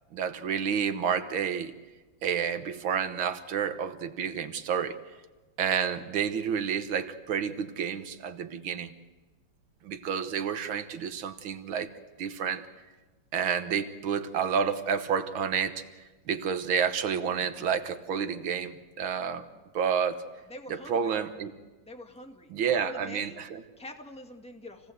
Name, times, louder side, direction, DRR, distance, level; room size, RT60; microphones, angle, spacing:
voice 1, 0.1-1.7 2.2-5.0 5.6-8.9 9.8-11.9 12.2-12.7 13.3-15.8 16.3-19.4 19.7-20.2 20.7-21.5 22.5-23.6, right 7 dB, 90° right, 8 dB, 2.0 m, -30 dB
voice 2, 20.5-21.1 21.8-23.4 23.8-24.9, left 1 dB, 5° left, 4 dB, 1.9 m, -45 dB
28.0 x 18.5 x 8.0 m, 1.2 s
omnidirectional pair, 2.1 m